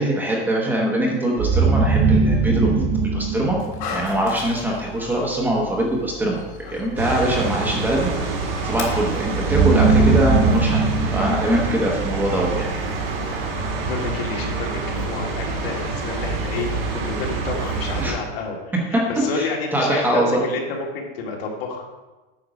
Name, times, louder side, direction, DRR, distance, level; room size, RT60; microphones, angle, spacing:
voice 1, 0.0-2.8 3.1-3.6 3.9-6.4 6.7-8.1 8.6-10.8 11.1-12.7 18.0-18.1 19.4-20.4, right 1 dB, 5° right, -2 dB, 0.9 m, -22 dB
sound 1, 1.4-4.4 9.3-12.6, right 4 dB, 40° right, 1.0 m, -20 dB
Dog, 3.6-10.0, left 5 dB, 50° left, 1.8 m, -37 dB
sound 2, 7.0-18.1, right 3 dB, 80° right, 2.9 m, -27 dB
voice 2, 13.8-21.8, left 4 dB, 75° left, -1 dB, 2.4 m, -30 dB
9.0 x 6.0 x 4.9 m, 1.1 s
supercardioid pair, 175°, 29 cm